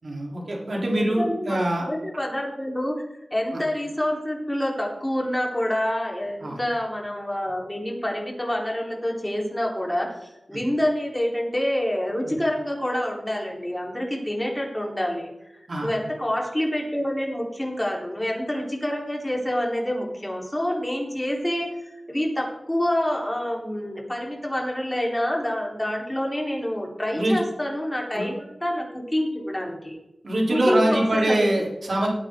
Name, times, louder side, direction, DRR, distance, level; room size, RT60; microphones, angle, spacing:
voice 1, 0.0-1.9 3.5-3.6 6.4-6.6 12.2-12.4 15.7-15.9 27.1-27.4 28.1-28.3 30.2-32.1, right 1 dB, 65° right, -3 dB, 3.8 m, -24 dB
voice 2, 1.0-15.3 15.8-30.0 30.5-31.5 32.0-32.1, left 1 dB, 15° left, -1 dB, 4.1 m, -27 dB
18.5 x 9.0 x 3.9 m, 0.90 s
wide cardioid pair, 60°, 0 cm